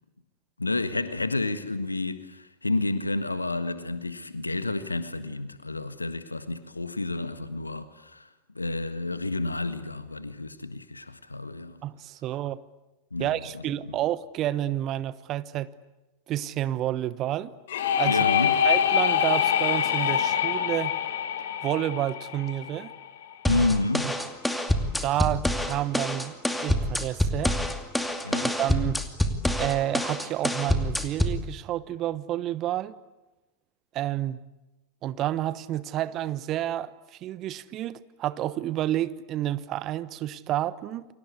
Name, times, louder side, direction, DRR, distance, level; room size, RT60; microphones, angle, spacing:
voice 1, 0.6-8.3 8.5-11.8 13.1-14.0 18.0-18.6 23.5-24.1 28.2-28.5, left 2 dB, 80° left, 1.5 m, -30 dB
voice 2, 11.8-12.6 13.2-15.7 16.3-17.5 18.0-18.2 18.6-21.0 21.6-22.9 24.0-24.1 25.0-26.3 26.6-27.6 28.4-29.0 29.6-33.0 33.9-34.4 35.0-36.9 37.2-41.1, right 13 dB, 35° right, 1.0 m, -29 dB
sound 1, 17.7-23.3, left 9 dB, 60° left, 2.2 m, -25 dB
sound 2, 23.4-31.4, left 1 dB, 5° left, 2.5 m, -27 dB
29.5 x 24.5 x 8.3 m
figure-of-eight pair, 90°, 0 cm